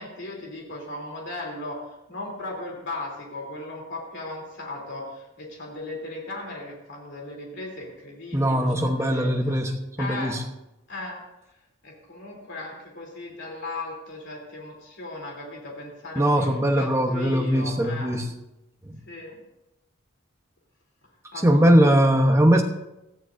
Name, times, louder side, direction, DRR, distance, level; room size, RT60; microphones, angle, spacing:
voice 1, 0.0-9.6 10.0-10.3 10.9-11.2 11.8-18.1 19.0-19.4 21.3-22.1, left 2 dB, 55° left, -1 dB, 3.3 m, -37 dB
voice 2, 8.3-10.4 16.2-18.3 18.8-19.0 21.4-22.6, equal, 15° right, 3 dB, 1.0 m, -20 dB
18.0 x 13.5 x 2.7 m, 0.92 s
head